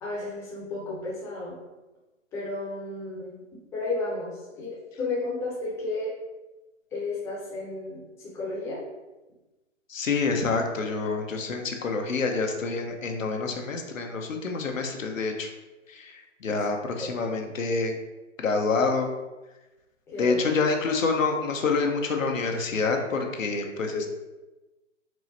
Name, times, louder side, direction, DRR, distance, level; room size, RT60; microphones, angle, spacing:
voice 1, 0.0-1.5 2.3-3.4 3.7-6.1 6.9-8.8 17.0-17.1 20.1-20.4 23.9-24.1, left 2 dB, 5° left, -7 dB, 0.7 m, -33 dB
voice 2, 9.9-15.5 15.9-18.0 18.4-19.1 20.2-24.1, left 4 dB, 85° left, 3 dB, 0.8 m, -27 dB
4.6 x 2.1 x 4.0 m, 1.1 s
hypercardioid pair, 135°, 39 cm